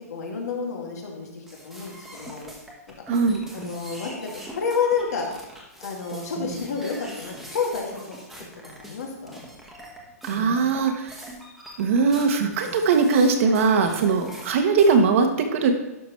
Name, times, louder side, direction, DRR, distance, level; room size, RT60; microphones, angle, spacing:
voice 1, 0.1-2.5 3.5-5.3 5.8-8.1 8.8-9.4, left 5 dB, 80° left, 0 dB, 2.3 m, -29 dB
sound 1, 1.5-15.0, right 1 dB, ahead, 1.2 m, -41 dB
voice 2, 3.1-3.4 10.2-11.1 11.8-15.7, right 5 dB, 55° right, 5 dB, 1.2 m, -20 dB
11.5 x 6.0 x 3.2 m, 0.97 s
hypercardioid pair, 155°, 9 cm